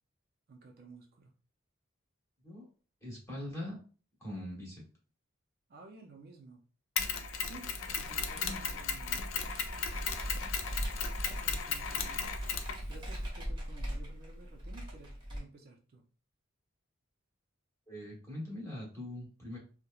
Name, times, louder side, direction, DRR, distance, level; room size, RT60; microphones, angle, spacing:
voice 1, 0.5-1.3 5.7-6.6 7.4-9.2 10.0-10.5 11.3-12.3 12.9-16.1, right 3 dB, 50° right, 3 dB, 0.4 m, -54 dB
voice 2, 3.0-3.8 4.2-4.8 8.4-8.6 17.9-19.6, left 1 dB, 15° left, -4 dB, 1.0 m, -42 dB
Mechanisms, 7.0-13.3, left 6 dB, 70° left, 0.4 m, -36 dB
Computer keyboard, 8.6-15.4, equal, 25° right, 0.7 m, -40 dB
2.9 x 2.1 x 2.3 m, 0.37 s
head